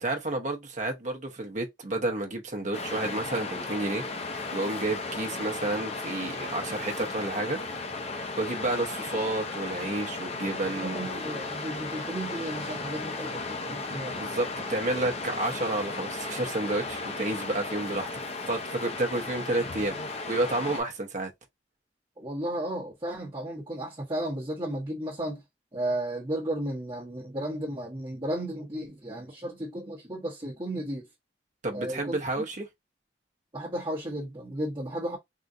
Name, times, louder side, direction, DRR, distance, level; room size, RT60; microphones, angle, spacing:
voice 1, 0.0-4.0 4.5-7.6 8.4-11.4 14.1-18.1 18.5-21.3 31.6-32.7, right 2 dB, 45° right, 0.8 m, -30 dB
Waves surf, 2.7-20.8, left 3 dB, 35° left, 0.6 m, -35 dB
voice 2, 10.7-14.3 22.2-25.4 25.7-31.1 31.7-32.4 33.5-35.2, right 1 dB, 25° right, 1.2 m, -34 dB
3.7 x 2.5 x 2.6 m
head